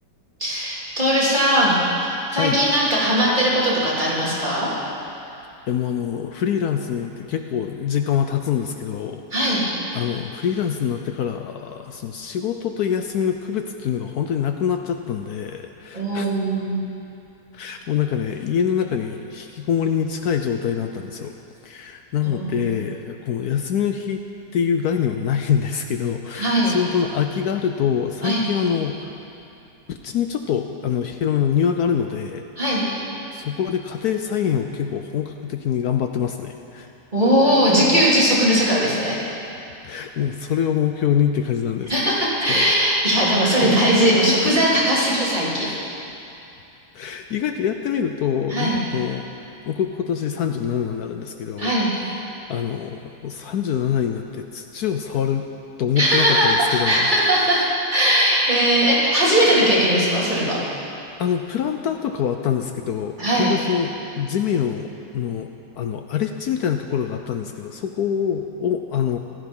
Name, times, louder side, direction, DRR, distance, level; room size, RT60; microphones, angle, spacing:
voice 1, 0.4-4.7 9.3-9.6 15.9-16.8 22.3-22.7 26.3-26.7 28.2-28.4 32.6-32.8 37.1-39.2 41.9-45.7 48.5-48.8 51.6-51.9 56.0-60.6 63.2-63.5, equal, 25° right, -8 dB, 3.5 m, -19 dB
voice 2, 5.7-9.5 9.9-16.3 17.5-21.3 21.6-24.2 24.5-29.1 29.9-32.4 33.3-36.9 39.8-41.9 42.5-42.7 43.1-43.2 43.6-43.8 45.6-45.8 46.9-49.3 49.7-51.7 52.5-55.4 55.8-57.1 58.8-58.9 61.2-65.5 65.8-69.2, left 8 dB, 70° left, 6 dB, 1.1 m, -25 dB
16.0 x 13.0 x 5.5 m, 2.8 s
omnidirectional pair, 1.9 m